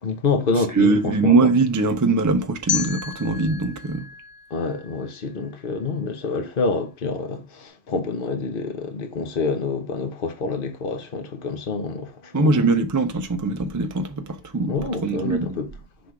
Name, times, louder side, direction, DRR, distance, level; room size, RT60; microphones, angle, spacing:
voice 1, 0.0-1.3 4.5-12.6 14.7-15.7, left 4 dB, 55° left, 1.1 m, -27 dB
voice 2, 0.7-4.1 12.3-14.7 15.0-15.6, right 3 dB, 25° right, 0.4 m, -21 dB
sound 1, 2.7-5.6, left 8 dB, 75° left, 0.8 m, -32 dB
6.2 x 3.5 x 4.7 m
omnidirectional pair, 1.1 m